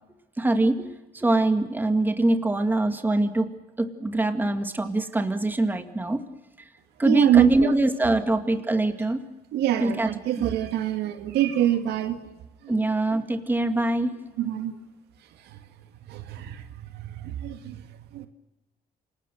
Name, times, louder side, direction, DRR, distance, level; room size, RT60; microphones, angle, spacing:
voice 1, 0.4-0.9 1.1-3.5 3.8-6.2 7.0-9.2 9.8-10.1 10.4-10.5 12.7-14.2, right 2 dB, 10° right, 7 dB, 2.0 m, -23 dB
voice 2, 7.0-7.7 9.5-12.2 14.4-14.8 15.5-15.6 16.1-16.6 16.9-17.8 18.1-18.3, right 11 dB, 80° right, 8 dB, 2.1 m, -24 dB
28.0 x 19.5 x 6.5 m, 1.0 s
cardioid pair, 110°, 17 cm